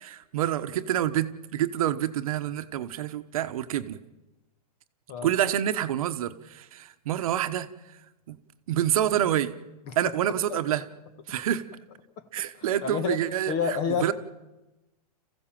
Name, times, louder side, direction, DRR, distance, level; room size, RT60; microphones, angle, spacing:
voice 1, 0.0-4.0 5.2-8.0 8.3-8.4 8.7-9.5 9.9-10.8 11.3-11.6 12.3-14.1, right 11 dB, 60° right, 10 dB, 1.2 m, -27 dB
voice 2, 12.6-13.2 13.5-14.1, left 6 dB, 30° left, 12 dB, 1.5 m, -29 dB
27.5 x 15.5 x 7.6 m, 1.1 s
hypercardioid pair, 155°, 21 cm